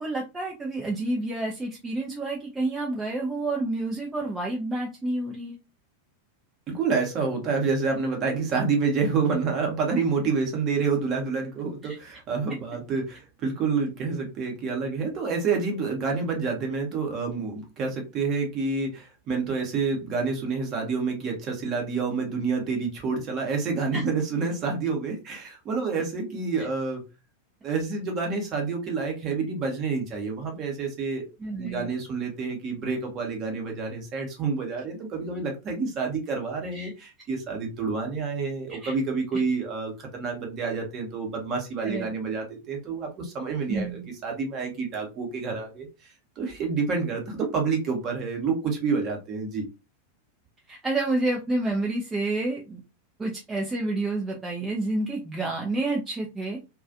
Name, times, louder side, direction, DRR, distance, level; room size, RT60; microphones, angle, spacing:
voice 1, 0.0-5.6 11.9-12.0 23.9-24.0 31.4-31.9 36.7-36.9 38.7-38.9 41.8-42.1 43.7-44.1 50.7-52.8 53.2-56.6, right 2 dB, 15° right, -1 dB, 0.5 m, -29 dB
voice 2, 6.7-27.0 27.6-31.3 31.6-49.7, right 4 dB, 35° right, 2 dB, 0.9 m, -28 dB
2.4 x 2.3 x 2.4 m, 0.27 s
figure-of-eight pair, 90°, 0 cm